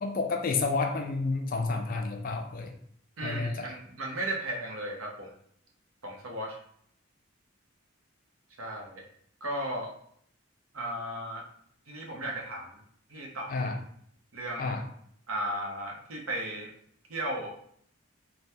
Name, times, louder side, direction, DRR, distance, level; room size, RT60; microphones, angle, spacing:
voice 1, 0.0-2.7 3.2-3.7 13.5-13.8 14.6-14.8, left 3 dB, 45° left, 4 dB, 0.4 m, -30 dB
voice 2, 3.2-5.3 6.0-6.6 8.6-9.0 9.4-9.9 10.7-11.4 11.9-12.8 13.1-13.7 14.3-14.7 15.3-16.7 17.1-17.5, right 1 dB, 85° right, 0 dB, 0.7 m, -35 dB
3.3 x 2.2 x 2.7 m, 0.66 s
head